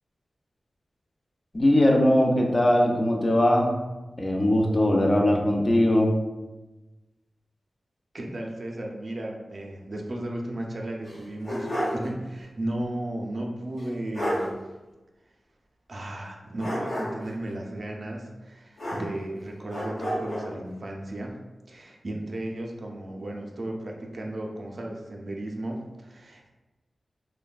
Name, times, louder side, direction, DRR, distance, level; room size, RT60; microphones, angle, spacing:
voice 1, 1.5-3.7 4.2-6.1, left 1 dB, 35° left, 0 dB, 0.4 m, -20 dB
voice 2, 8.1-14.5 15.9-21.4 21.7-26.5, right 1 dB, 55° right, 0 dB, 0.4 m, -35 dB
sound 1, 11.0-12.1 12.4-12.5 13.8-13.9 14.1-14.5 16.6-17.3 18.8-19.4 19.7-20.5, equal, 75° left, 1.0 m, -30 dB
3.2 x 2.1 x 2.3 m, 1.1 s
wide cardioid pair, 75°, 0 cm